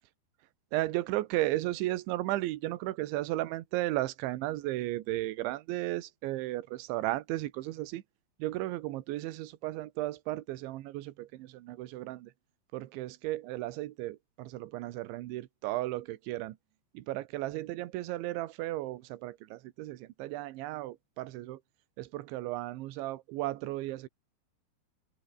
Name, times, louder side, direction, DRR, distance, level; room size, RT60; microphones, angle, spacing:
voice 1, 0.7-8.0 8.4-12.3 12.7-16.6 16.9-21.6 22.0-24.1, right 16 dB, 80° right, 3.5 m, -35 dB
omnidirectional pair, 5.6 m